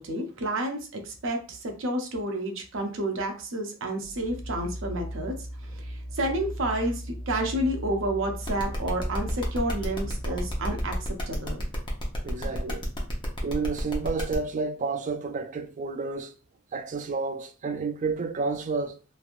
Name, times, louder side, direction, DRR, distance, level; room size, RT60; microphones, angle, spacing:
voice 1, 0.0-5.3 5.8-11.6 12.4-12.5, right 1 dB, 65° right, 0.7 m, -30 dB
sound 1, 4.0-11.1, equal, 90° right, 1.5 m, -37 dB
sound 2, 8.4-14.3, left 1 dB, 25° left, 0.7 m, -35 dB
voice 2, 12.2-12.9 13.4-16.3 16.7-19.0, right 4 dB, 35° right, 0.3 m, -30 dB
3.2 x 2.5 x 2.5 m
head